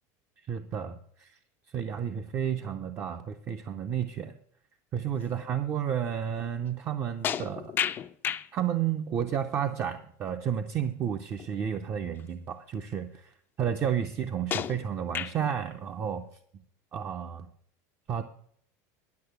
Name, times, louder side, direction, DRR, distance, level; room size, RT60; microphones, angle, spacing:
voice 1, 0.5-1.4 1.7-4.3 4.9-7.7 8.5-16.2 16.5-16.6 16.9-17.5 18.1-18.2, right 8 dB, 25° right, 8 dB, 0.5 m, -31 dB
sound 1, 7.2-8.5 11.4-11.5 12.2-12.3 14.5-15.5, left 9 dB, 25° left, 0.4 m, -32 dB
10.5 x 6.5 x 7.9 m, 0.65 s
cardioid pair, 165°, 9 cm